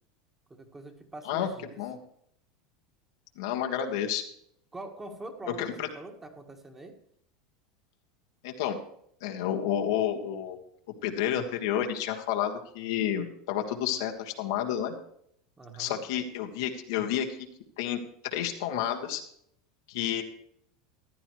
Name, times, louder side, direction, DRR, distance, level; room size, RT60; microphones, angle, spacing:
voice 1, 0.5-1.7 4.7-7.0 15.6-16.0, right 2 dB, 15° right, 4 dB, 1.7 m, -44 dB
voice 2, 3.4-4.2 5.6-5.9 8.4-8.8 9.2-10.6 11.0-14.9 15.8-17.4 17.8-18.0 18.3-19.2 19.9-20.2, left 10 dB, 80° left, 3 dB, 1.6 m, -30 dB
15.0 x 10.5 x 3.1 m, 0.69 s
supercardioid pair, 125°, 2 cm